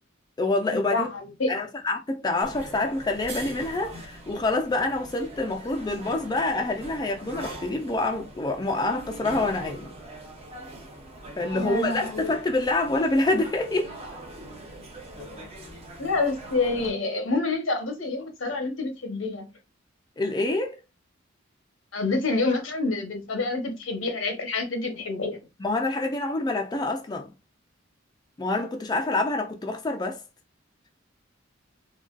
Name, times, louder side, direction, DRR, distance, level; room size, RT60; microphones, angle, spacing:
voice 1, 0.4-1.1 1.5-9.9 11.4-14.0 20.2-20.8 25.6-27.3 28.4-30.2, left 2 dB, 20° left, 0.4 m, -26 dB
voice 2, 0.9-1.6 11.5-12.3 15.2-15.5 16.0-19.5 21.9-25.4, left 3 dB, 85° left, 0.9 m, -28 dB
sound 1, 2.4-16.9, right 1 dB, 30° right, 0.7 m, -42 dB
3.9 x 2.3 x 2.4 m
head